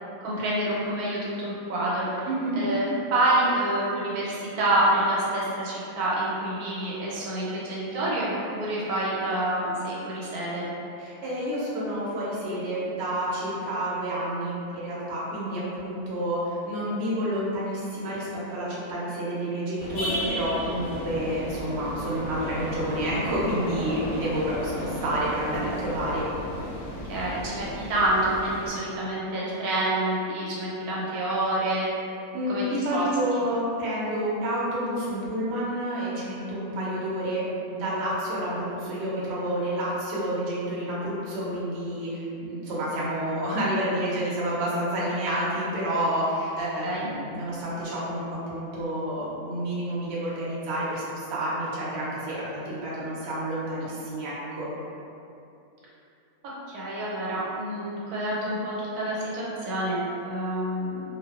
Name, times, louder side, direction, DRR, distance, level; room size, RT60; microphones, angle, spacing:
voice 1, 0.2-2.3 2.6-2.8 3.1-10.7 27.1-31.9 32.5-32.6 32.9-33.0 46.8-47.1 56.7-61.0, right 1 dB, 85° right, -7 dB, 1.1 m, -27 dB
voice 2, 2.3-2.6 11.0-26.2 32.3-54.7, right 1 dB, 60° right, -7 dB, 0.8 m, -29 dB
sound 1, 19.8-28.7, left 1 dB, 70° left, 0.8 m, -34 dB
2.4 x 2.2 x 2.3 m, 2.7 s
omnidirectional pair, 1.6 m